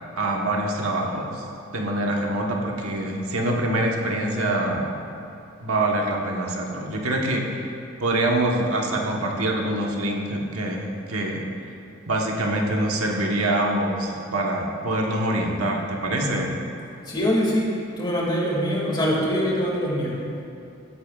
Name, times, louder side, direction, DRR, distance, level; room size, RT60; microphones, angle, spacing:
voice 1, 0.1-1.4 1.7-5.0 5.6-7.6 8.0-11.5 12.1-16.6, right 1 dB, 85° right, 0 dB, 1.3 m, -25 dB
voice 2, 17.0-20.2, equal, 20° left, -4 dB, 2.3 m, -23 dB
16.5 x 10.0 x 2.4 m, 2.6 s
head